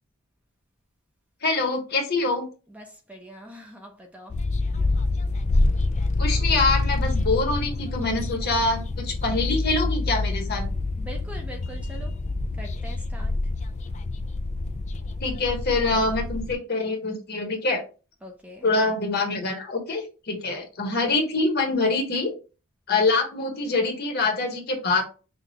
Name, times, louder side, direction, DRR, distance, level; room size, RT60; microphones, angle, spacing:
voice 1, 1.4-2.5 6.2-10.7 15.2-17.8 18.6-22.3 22.9-25.0, left 3 dB, 50° left, 1.1 m, -25 dB
voice 2, 2.7-4.3 11.0-12.1 12.6-13.3 18.2-18.7 20.4-20.6, equal, 5° right, 0.6 m, -42 dB
sound 1, 4.3-16.5, left 2 dB, 35° left, 0.3 m, -27 dB
5.8 x 2.3 x 2.8 m
head